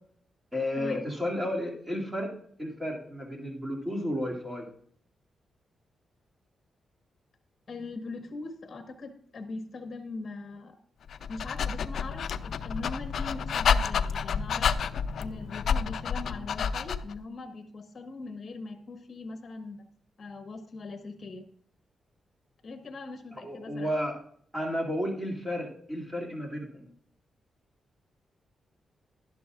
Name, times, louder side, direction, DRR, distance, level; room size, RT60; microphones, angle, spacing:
voice 1, 0.5-4.7 23.4-24.2 24.5-26.9, left 1 dB, 10° right, -2 dB, 2.4 m, -32 dB
voice 2, 7.7-10.8 11.3-14.7 15.2-19.8 20.2-21.5 22.6-23.9, left 3 dB, 45° left, 6 dB, 1.3 m, -41 dB
Dog, 11.1-17.2, left 6 dB, 70° left, 0.4 m, -29 dB
11.5 x 11.5 x 2.4 m, 0.62 s
cardioid pair, 115°, 0 cm